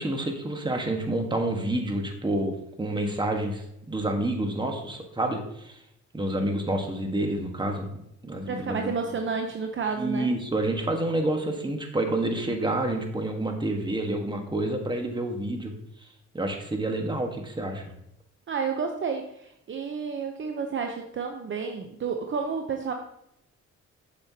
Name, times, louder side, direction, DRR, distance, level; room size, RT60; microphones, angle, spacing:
voice 1, 0.0-5.8 6.1-7.9 8.2-8.9 10.0-15.7 16.3-17.9, right 1 dB, 15° right, 3 dB, 1.3 m, -28 dB
voice 2, 8.5-10.3 18.5-22.9, right 5 dB, 40° right, 4 dB, 0.7 m, -30 dB
7.3 x 6.8 x 2.8 m, 0.78 s
cardioid pair, 90°, 30 cm